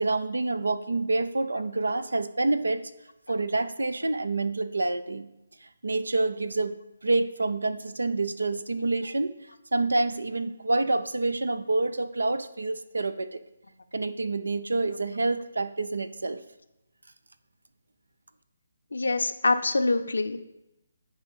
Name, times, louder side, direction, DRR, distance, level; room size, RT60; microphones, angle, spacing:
voice 1, 0.0-2.9 3.3-5.3 5.6-6.7 7.0-9.3 9.7-13.4 13.9-16.4, right 2 dB, 85° right, 13 dB, 0.6 m, -27 dB
voice 2, 18.9-20.4, left 3 dB, 80° left, 10 dB, 0.7 m, -25 dB
9.7 x 4.9 x 5.4 m, 0.90 s
figure-of-eight pair, 155°, 0 cm